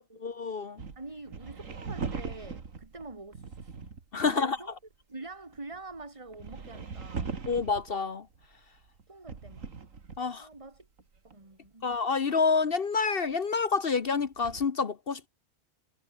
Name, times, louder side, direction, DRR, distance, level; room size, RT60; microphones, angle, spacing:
voice 1, 0.2-0.8 4.1-4.6 7.5-8.3 10.2-10.5 11.8-15.3, left 5 dB, 50° left, 1.2 m, -28 dB
sound 1, 0.8-4.3 4.6-4.7 5.3-8.0 8.3-11.4 11.6-11.7 11.9-12.0 12.6-12.7 14.2-14.6, right 5 dB, 80° right, 2.5 m, -40 dB
voice 2, 1.0-3.9 4.2-4.7 5.1-7.4 9.1-9.7 10.4-10.9 11.2-11.9, right 2 dB, 25° right, 2.2 m, -45 dB
omnidirectional pair, 1.3 m